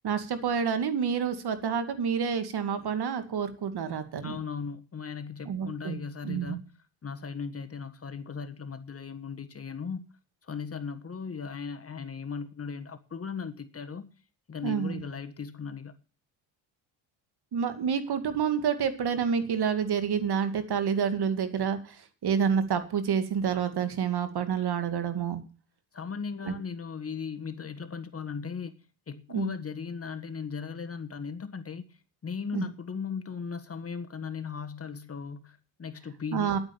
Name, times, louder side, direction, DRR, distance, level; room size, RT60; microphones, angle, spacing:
voice 1, 0.0-4.4 5.5-6.0 6.2-6.6 14.6-15.0 17.5-25.4 26.4-26.5 29.3-29.5 32.5-32.7 36.3-36.6, right 7 dB, 55° right, 2.2 m, -28 dB
voice 2, 4.2-6.6 7.0-10.0 10.5-14.1 14.5-16.0 25.9-28.8 29.1-32.0 32.2-36.6, left 6 dB, 30° left, 1.5 m, -37 dB
11.0 x 9.1 x 7.0 m
cardioid pair, 85°, 46 cm